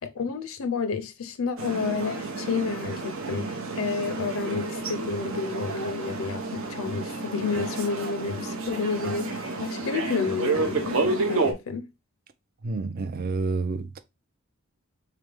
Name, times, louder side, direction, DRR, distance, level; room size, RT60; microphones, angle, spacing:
voice 1, 0.0-11.9, left 5 dB, 70° left, 0.5 m, -30 dB
sound 1, 1.6-11.5, right 3 dB, 65° right, 0.8 m, -30 dB
voice 2, 12.6-14.0, right 3 dB, 45° right, 0.4 m, -29 dB
3.4 x 3.3 x 3.3 m
head